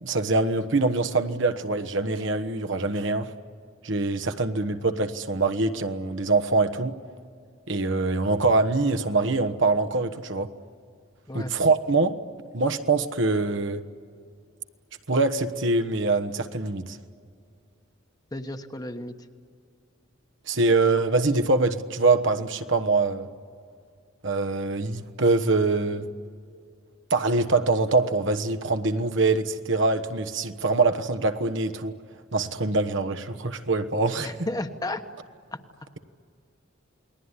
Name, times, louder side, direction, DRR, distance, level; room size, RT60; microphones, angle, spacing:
voice 1, 0.0-3.3 3.8-7.0 7.7-10.5 11.3-12.2 12.5-13.8 15.1-17.0 20.5-23.3 24.2-26.0 27.1-31.9 32.3-34.5, right 3 dB, 65° right, 1.2 m, -24 dB
voice 2, 18.3-19.1 34.2-35.0, left 1 dB, 20° left, 1.2 m, -33 dB
28.5 x 21.0 x 9.8 m
head